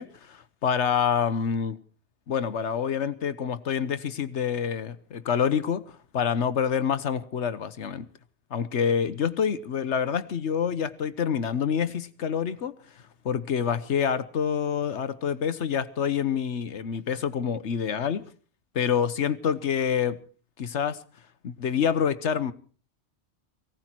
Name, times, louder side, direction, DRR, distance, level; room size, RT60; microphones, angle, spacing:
voice 1, 0.0-1.8 2.3-8.1 8.5-12.7 13.2-18.2 18.7-20.2 20.6-21.0 21.4-22.5, left 7 dB, 85° left, 1.3 m, -27 dB
19.0 x 17.0 x 4.5 m
omnidirectional pair, 1.2 m